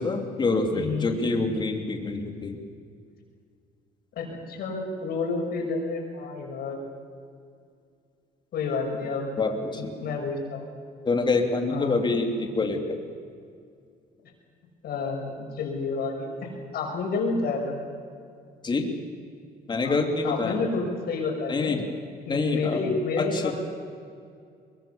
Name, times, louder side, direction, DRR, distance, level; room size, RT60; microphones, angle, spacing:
voice 1, 0.0-2.6 9.4-9.9 11.1-13.0 18.6-18.9 19.7-20.6 21.5-21.8 22.3-22.8 23.2-23.5, left 3 dB, 25° left, 4 dB, 3.0 m, -26 dB
voice 2, 0.7-1.2 4.1-6.8 8.5-9.3 9.7-10.7 11.7-12.0 14.8-17.8 19.8-20.0 20.2-21.8 22.2-23.5, left 4 dB, 65° left, 0 dB, 6.6 m, -30 dB
22.5 x 22.0 x 7.2 m, 2.3 s
cardioid pair, 110°, 17 cm